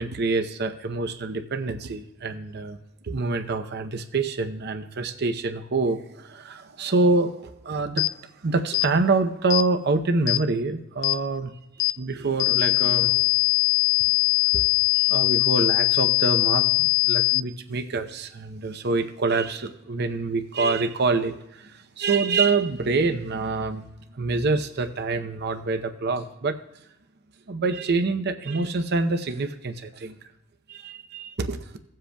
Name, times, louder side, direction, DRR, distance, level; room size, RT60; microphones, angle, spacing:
voice 1, 0.0-2.8 3.0-8.1 8.4-11.5 12.0-13.3 14.5-14.6 15.1-23.8 24.1-26.6 27.5-30.1 30.7-31.8, right 3 dB, 55° right, 8 dB, 0.7 m, -26 dB
sound 1, 8.0-8.1 8.7-8.9 9.5-9.7 10.3-10.4 11.0-11.2 11.8-12.0 12.4-17.4, left 23 dB, 70° left, 0.4 m, -21 dB
17.5 x 7.6 x 2.3 m, 0.92 s
head